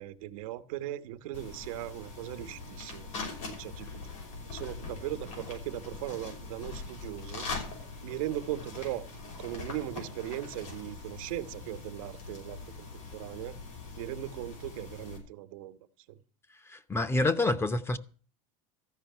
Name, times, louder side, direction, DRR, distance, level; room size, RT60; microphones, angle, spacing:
voice 1, 0.0-3.1 3.5-4.0 4.4-7.5 8.0-9.0 9.4-13.6 14.0-15.8 16.1-16.2, right 14 dB, 80° right, 1.1 m, -38 dB
sound 1, 1.3-15.2, left 4 dB, 90° left, 6.0 m, -42 dB
voice 2, 16.7-18.0, left 2 dB, 15° left, 0.7 m, -27 dB
14.0 x 5.3 x 9.2 m
supercardioid pair, 130°, 17 cm